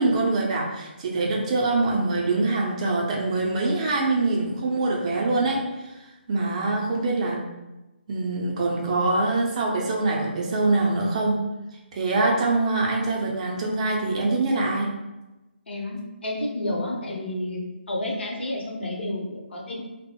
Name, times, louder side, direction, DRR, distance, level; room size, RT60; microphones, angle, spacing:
voice 1, 0.0-5.9 6.3-7.4 8.1-11.4 11.9-14.9, right 2 dB, 35° right, -2 dB, 0.5 m, -24 dB
voice 2, 15.7-17.6 17.9-19.9, left 1 dB, 70° left, -1 dB, 0.7 m, -30 dB
2.6 x 2.0 x 2.8 m, 1.0 s
figure-of-eight pair, 145°, 6 cm